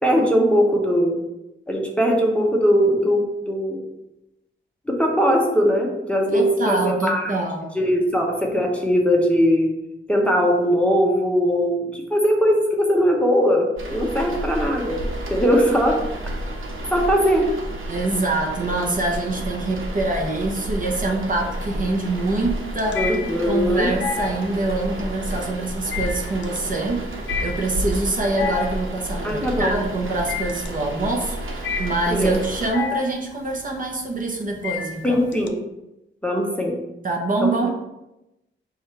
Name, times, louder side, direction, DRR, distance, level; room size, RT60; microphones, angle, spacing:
voice 1, 0.0-1.2 1.7-3.8 4.9-7.4 7.7-9.7 10.1-15.0 15.3-16.0 16.9-17.5 22.9-23.9 29.2-29.8 32.1-32.3 35.0-35.6 36.2-36.8 37.4-37.7, equal, 5° left, -1 dB, 0.7 m, -20 dB
voice 2, 6.3-7.7 17.9-23.0 23.5-27.1 27.4-35.2 37.0-37.7, right 2 dB, 40° right, 0 dB, 0.7 m, -25 dB
sound 1, 13.8-32.7, right 1 dB, 75° right, 1.0 m, -31 dB
sound 2, 20.0-20.6 21.0-35.5, left 6 dB, 65° left, 0.5 m, -31 dB
4.8 x 2.4 x 4.3 m, 0.91 s
wide cardioid pair, 110°, 21 cm